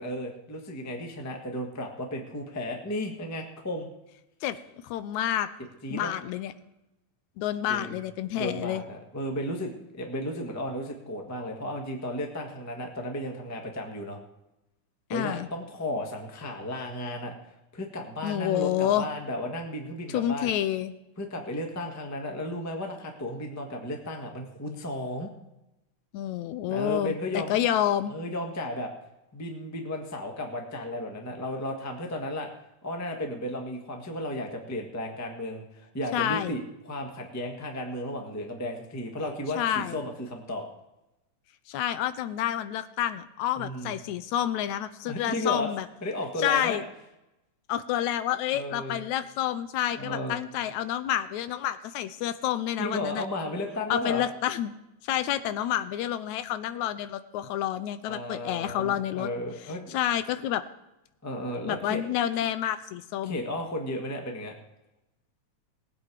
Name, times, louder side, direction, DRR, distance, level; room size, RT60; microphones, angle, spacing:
voice 1, 0.0-3.9 5.8-6.1 7.7-7.9 8.3-14.2 15.1-17.4 17.7-20.5 21.2-25.3 26.7-27.5 28.1-28.9 29.3-32.5 32.8-40.6 43.6-44.0 45.0-45.7 46.0-46.8 48.5-49.0 50.0-50.4 52.8-54.2 58.1-59.9 61.2-62.0 63.2-64.5, left 1 dB, 15° left, 2 dB, 0.7 m, -34 dB
voice 2, 4.8-5.5 5.9-6.5 7.4-8.8 15.1-15.5 18.2-19.1 20.1-20.9 26.1-28.1 36.1-36.6 39.6-40.0 41.7-45.9 46.4-46.8 47.7-53.2 53.9-54.7 55.0-59.3 59.9-60.6 61.7-63.4, left 11 dB, 85° left, 12 dB, 2.0 m, -29 dB
19.5 x 8.5 x 4.8 m, 0.94 s
omnidirectional pair, 3.3 m